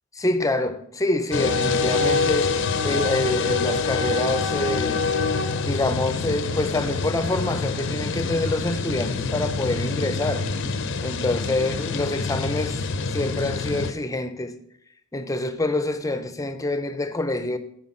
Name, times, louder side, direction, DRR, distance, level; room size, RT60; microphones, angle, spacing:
voice 1, 0.1-2.5 2.8-5.0 5.6-10.4 11.0-14.6 15.1-17.6, left 2 dB, 15° left, 0.6 m, -26 dB
sound 1, 1.3-13.9, left 4 dB, 65° left, 0.6 m, -26 dB
9.6 x 4.5 x 5.8 m
head